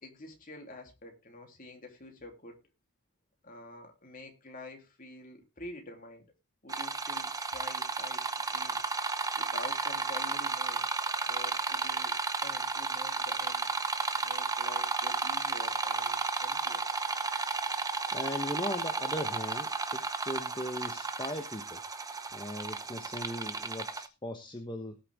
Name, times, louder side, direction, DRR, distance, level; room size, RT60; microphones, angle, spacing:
voice 1, 0.0-2.6 3.4-6.2 6.6-8.8 9.4-10.9 11.2-13.6 14.2-16.8, left 2 dB, 40° left, 3 dB, 3.2 m, -48 dB
sound 1, 6.7-24.1, right 4 dB, 15° right, 0.8 m, -33 dB
voice 2, 18.1-21.8 22.3-25.0, left 1 dB, 20° left, 5 dB, 1.1 m, -38 dB
19.0 x 6.6 x 3.5 m, 0.26 s
head